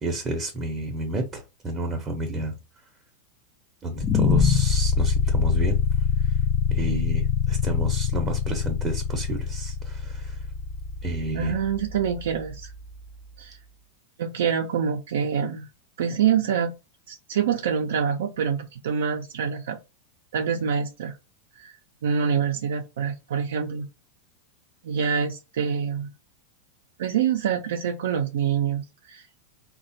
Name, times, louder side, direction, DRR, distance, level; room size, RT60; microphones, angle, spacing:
voice 1, 0.0-2.6 3.8-5.8 6.2-6.3 6.7-10.4 11.0-11.6, right 1 dB, 25° right, 0.6 m, -31 dB
sound 1, 4.0-13.0, left 6 dB, 30° left, 0.4 m, -25 dB
voice 2, 11.3-12.7 13.4-13.6 14.2-15.7 16.0-16.7 17.1-19.8 20.3-21.2 21.6-21.7 22.0-23.9 24.8-26.1 27.0-29.4, right 7 dB, 80° right, 0.4 m, -26 dB
3.2 x 2.1 x 2.6 m
hypercardioid pair, 125°, 0 cm